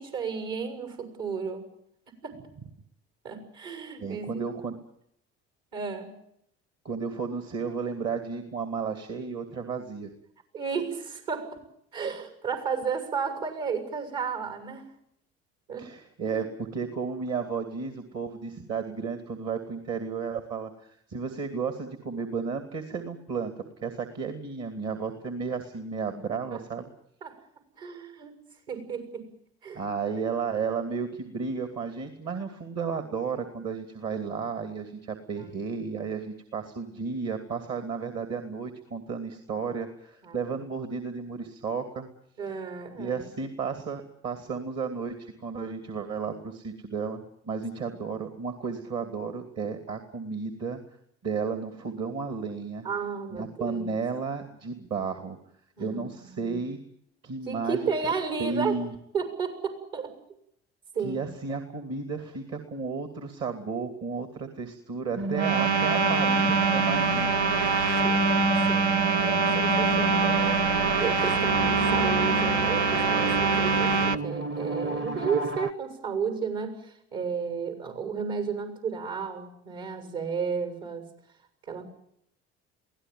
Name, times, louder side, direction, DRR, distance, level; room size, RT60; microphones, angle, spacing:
voice 1, 0.0-1.7 2.2-2.4 3.2-4.4 5.7-6.1 10.5-11.6 11.9-14.9 15.7-15.9 16.2-16.5 26.5-26.6 27.2-27.4 27.7-28.4 28.7-29.3 29.6-29.8 35.4-35.6 40.2-40.6 42.4-43.3 47.8-48.0 52.8-53.9 55.8-56.6 57.4-58.8 59.1-60.1 60.9-61.3 68.0-68.3 68.7-81.1 81.6-81.8, right 6 dB, 65° right, 7 dB, 6.8 m, -33 dB
voice 2, 4.0-4.8 6.8-10.1 15.8-23.5 23.8-26.9 29.7-42.1 43.0-50.8 51.2-52.9 53.3-55.4 55.8-56.8 57.2-58.1 58.4-58.9 61.0-67.4, right 5 dB, 50° right, 9 dB, 2.7 m, -33 dB
sound 1, 65.1-75.7, right 3 dB, 35° right, 1.2 m, -30 dB
sound 2, 65.3-74.2, right 4 dB, 90° right, 0.9 m, -24 dB
23.0 x 17.0 x 9.3 m, 0.73 s
hypercardioid pair, 55°, 33 cm